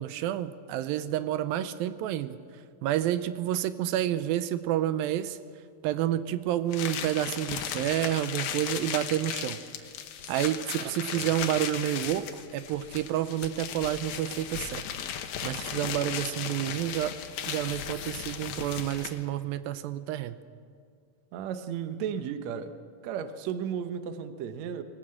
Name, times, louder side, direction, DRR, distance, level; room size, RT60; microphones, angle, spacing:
voice 1, 0.0-2.4 2.8-5.4 5.8-9.6 10.3-14.8 15.4-17.2 17.5-20.3, right 12 dB, 85° right, 12 dB, 2.5 m, -29 dB
sound 1, 6.7-19.3, left 9 dB, 85° left, 2.9 m, -36 dB
voice 2, 21.3-22.7 23.0-24.8, right 8 dB, 65° right, 9 dB, 1.9 m, -34 dB
22.0 x 17.5 x 7.7 m, 2.2 s
omnidirectional pair, 4.1 m